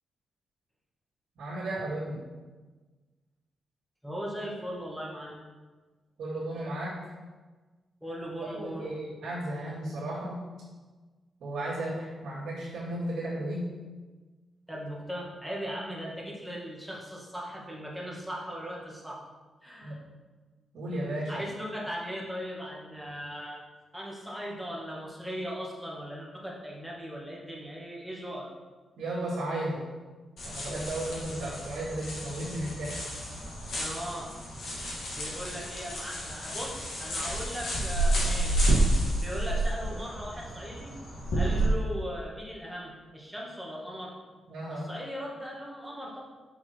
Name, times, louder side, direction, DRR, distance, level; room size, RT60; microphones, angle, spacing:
voice 1, 1.4-2.2 6.2-7.0 8.5-10.5 11.4-13.7 19.8-20.0 20.7-21.3 29.0-29.8 30.4-33.0 41.4-41.7 44.5-44.9, right 1 dB, 90° right, -7 dB, 2.2 m, -34 dB
voice 2, 4.0-5.4 8.0-8.9 14.7-19.3 19.6-20.0 21.3-23.6 23.9-28.5 31.2-31.5 33.8-34.3 35.1-38.7 39.2-40.9 41.3-44.2 44.7-46.2, equal, ahead, -4 dB, 1.9 m, -38 dB
sound 1, 30.4-41.7, right 1 dB, 70° left, 2.3 m, -30 dB
6.1 x 5.7 x 4.6 m, 1.3 s
cardioid pair, 95°, 0 cm